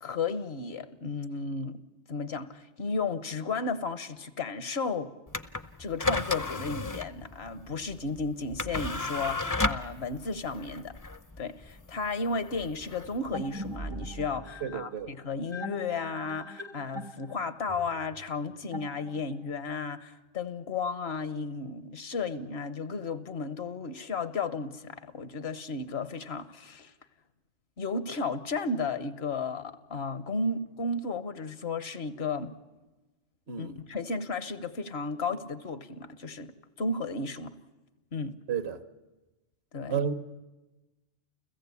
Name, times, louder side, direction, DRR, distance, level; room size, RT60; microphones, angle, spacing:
voice 1, 0.0-1.8 2.1-5.1 5.8-10.9 11.4-26.9 27.8-32.5 33.6-37.5 38.1-38.3 39.7-40.0, left 4 dB, 65° left, 1.2 m, -34 dB
sound 1, 5.3-13.8, left 2 dB, 20° left, 0.6 m, -34 dB
sound 2, 13.3-19.5, equal, 25° right, 0.7 m, -42 dB
voice 2, 14.6-15.1 33.5-33.8 38.5-38.8 39.9-40.1, right 7 dB, 65° right, 1.3 m, -31 dB
29.5 x 15.5 x 8.4 m
omnidirectional pair, 1.2 m